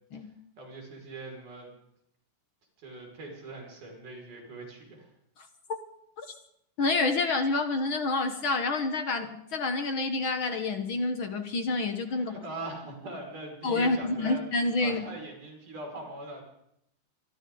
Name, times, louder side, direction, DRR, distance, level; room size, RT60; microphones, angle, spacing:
voice 1, 0.6-1.7 2.8-5.1 12.1-14.4 14.8-16.4, right 2 dB, 65° right, 1 dB, 7.0 m, -41 dB
voice 2, 6.8-12.3 13.6-15.0, left 3 dB, 60° left, 7 dB, 1.4 m, -28 dB
28.0 x 24.0 x 3.9 m, 0.77 s
omnidirectional pair, 4.0 m